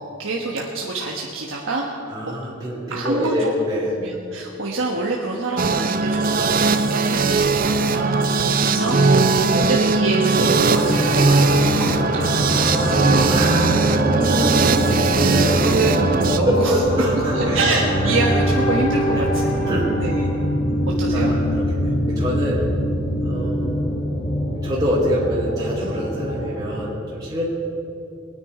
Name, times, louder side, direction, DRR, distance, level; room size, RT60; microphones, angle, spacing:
voice 1, 0.0-1.9 2.3-2.4 2.9-3.5 4.0-9.0 9.5-12.8 13.0-13.7 14.1-16.8 17.3-19.0 19.3-19.7 20.0-20.3 21.0-21.3, right 2 dB, 75° right, -2 dB, 1.4 m, -27 dB
voice 2, 2.1-3.9 8.5-9.1 9.5-9.7 13.3-14.0 15.3-15.6 16.4-17.6 19.1-19.2 19.7-19.9 21.1-22.6 23.2-24.0 24.5-27.5, equal, 20° right, -8 dB, 2.7 m, -26 dB
sound 1, 5.6-16.4, right 4 dB, 45° right, 0.6 m, -19 dB
sound 2, 10.4-26.8, equal, 50° left, 4.3 m, -23 dB
22.5 x 9.6 x 4.9 m, 2.6 s
head